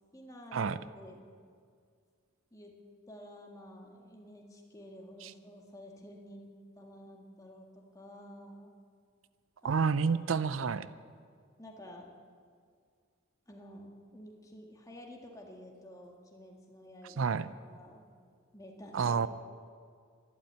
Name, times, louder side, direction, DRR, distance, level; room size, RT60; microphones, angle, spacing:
voice 1, 0.1-1.2 2.5-2.8 3.1-8.7 9.6-9.7 10.1-10.2 11.6-12.1 13.5-17.3 17.6-18.0 18.5-19.3, equal, 15° left, 1 dB, 1.7 m, -51 dB
voice 2, 9.6-10.9 17.2-17.5 18.9-19.3, right 5 dB, 80° right, 16 dB, 0.5 m, -29 dB
12.0 x 11.5 x 9.2 m, 2.1 s
head